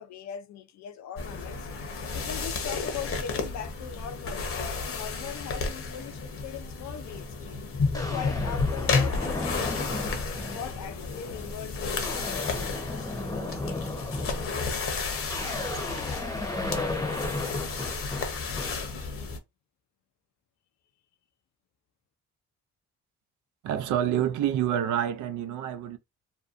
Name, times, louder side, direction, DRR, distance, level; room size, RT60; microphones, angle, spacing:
voice 1, 0.0-1.7 2.1-7.4 7.8-13.5 13.9-14.3, left 8 dB, 65° left, 0.5 m, -40 dB
sound 1, 1.2-19.4, left 4 dB, 45° left, 0.8 m, -32 dB
sound 2, 7.1-7.2 7.9-10.8 11.3-11.5 11.8-19.0, left 2 dB, 10° left, 0.7 m, -35 dB
sound 3, 15.2-17.5, right 11 dB, 30° right, 0.5 m, -49 dB
voice 2, 23.6-26.0, right 10 dB, 80° right, 0.6 m, -27 dB
2.7 x 2.2 x 2.4 m
cardioid pair, 90°, 30 cm